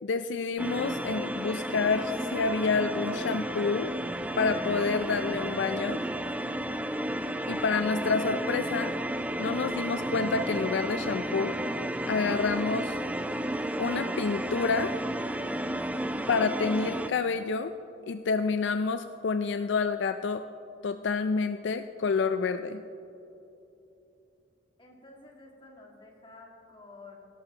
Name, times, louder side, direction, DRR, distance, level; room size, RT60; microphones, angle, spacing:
voice 1, 0.0-3.9 4.4-6.0 7.5-8.9 9.4-11.5 12.1-13.0 13.8-14.9 16.3-17.7 18.1-20.4 20.8-22.8, left 4 dB, 70° left, 9 dB, 0.4 m, -28 dB
sound 1, 0.6-17.1, right 1 dB, 5° right, 0.3 m, -32 dB
voice 2, 24.8-27.2, left 3 dB, 25° left, -1 dB, 1.9 m, -51 dB
18.0 x 12.0 x 2.8 m, 2.9 s
head